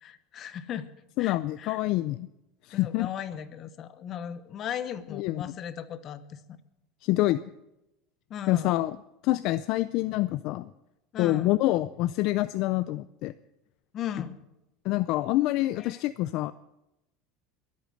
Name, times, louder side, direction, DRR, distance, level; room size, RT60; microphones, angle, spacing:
voice 1, 0.0-0.9 1.2-1.8 2.7-6.4 8.3-8.7 11.1-11.5 13.9-14.4 15.8-16.0, left 9 dB, 35° left, 12 dB, 1.0 m, -37 dB
voice 2, 1.2-2.3 2.6-3.1 5.1-5.4 7.0-7.4 8.5-9.0 9.2-10.7 11.2-13.3 14.8-16.5, left 17 dB, 55° left, 14 dB, 0.4 m, -26 dB
22.5 x 8.5 x 6.4 m, 0.92 s
supercardioid pair, 155°, 0 cm